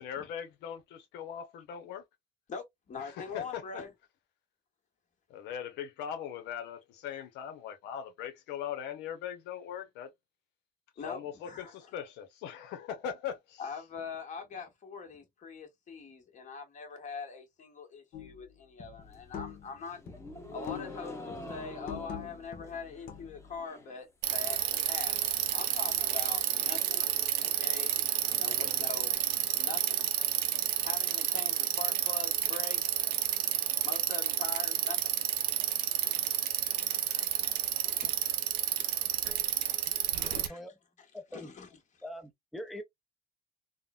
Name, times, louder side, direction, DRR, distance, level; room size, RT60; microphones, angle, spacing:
voice 1, 0.0-2.0 3.0-3.6 5.3-10.1 11.0-13.6, left 8 dB, 85° left, 0.7 m, -40 dB
voice 2, 2.5-3.9 11.0-11.7 13.6-20.0 20.5-25.1 25.5-27.9 28.4-30.0 30.8-32.8 33.8-35.0 35.9-38.1 39.2-40.6 41.3-42.0, left 5 dB, 45° left, 1.3 m, -43 dB
sound 1, 18.1-18.4 18.8-19.8 20.1-21.0 21.3-23.5, left 8 dB, 60° left, 1.0 m, -44 dB
sound 2, 19.0-24.0 24.3-24.9 25.2-25.3 25.5-25.6 25.9-29.9, left 1 dB, 15° left, 1.0 m, -48 dB
Bicycle, 24.2-40.5, right 12 dB, 90° right, 0.6 m, -30 dB
voice 3, 40.2-40.7 41.1-41.5 42.0-42.8, left 1 dB, ahead, 0.4 m, -43 dB
3.7 x 2.0 x 2.3 m
cardioid pair, 110°, 17 cm